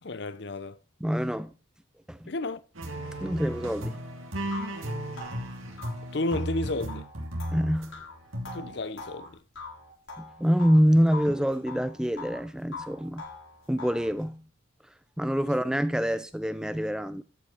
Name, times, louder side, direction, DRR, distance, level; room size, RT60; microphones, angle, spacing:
voice 1, 0.0-0.8 2.3-2.6 6.1-7.0 8.5-9.4, left 2 dB, 55° left, 0.7 m, -32 dB
voice 2, 1.0-1.5 2.1-2.3 3.2-4.0 7.5-8.0 10.2-13.2 13.7-14.4 15.2-17.2, equal, 5° right, 0.4 m, -26 dB
sound 1, 2.8-7.9 8.3-8.7, equal, 85° right, 2.8 m, -35 dB
sound 2, 3.9-4.0 4.5-10.8 11.1-12.4 12.7-14.1, left 3 dB, 80° left, 5.6 m, -43 dB
13.5 x 5.6 x 5.7 m
head